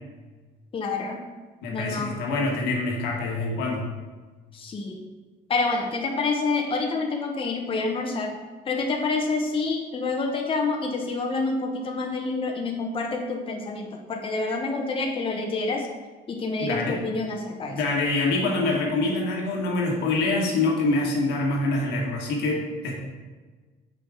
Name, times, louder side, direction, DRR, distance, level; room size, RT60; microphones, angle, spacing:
voice 1, 0.7-1.2 1.7-2.2 4.5-5.0 5.5-8.3 8.6-15.9 16.3-17.8, left 3 dB, 30° left, 2 dB, 0.9 m, -27 dB
voice 2, 1.6-3.9 16.6-17.0 17.7-22.9, left 2 dB, 90° left, -1 dB, 1.6 m, -25 dB
6.7 x 5.2 x 3.6 m, 1.3 s
cardioid pair, 110°, 17 cm